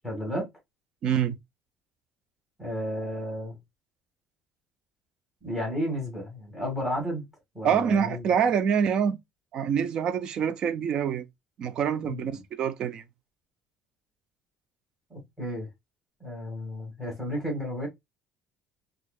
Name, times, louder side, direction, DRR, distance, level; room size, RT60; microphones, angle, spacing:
voice 1, 0.0-0.5 2.6-3.6 5.4-7.3 7.5-8.3 12.1-12.2 15.1-15.7 16.2-17.9, equal, ahead, 1.9 m, -32 dB
voice 2, 1.0-1.4 7.6-9.2 9.5-11.2 11.6-13.0, right 7 dB, 40° right, 0.5 m, -26 dB
4.5 x 2.5 x 2.3 m
cardioid pair, 160°, 2 cm